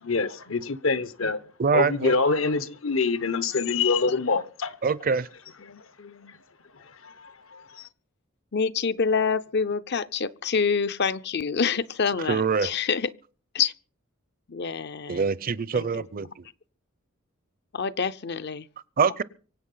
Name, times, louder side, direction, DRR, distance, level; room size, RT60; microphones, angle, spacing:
voice 1, 0.0-1.4 1.7-4.8 7.0-7.8, left 4 dB, 70° left, 1.1 m, -25 dB
voice 2, 1.6-2.2 4.8-5.3 12.3-12.7 15.1-16.3 19.0-19.2, right 5 dB, 45° right, 0.6 m, -24 dB
voice 3, 5.6-6.3 8.5-13.1 13.5-13.7 14.5-15.2 15.7-16.0 17.7-18.7, left 5 dB, 55° left, 0.7 m, -27 dB
24.5 x 8.3 x 5.6 m
head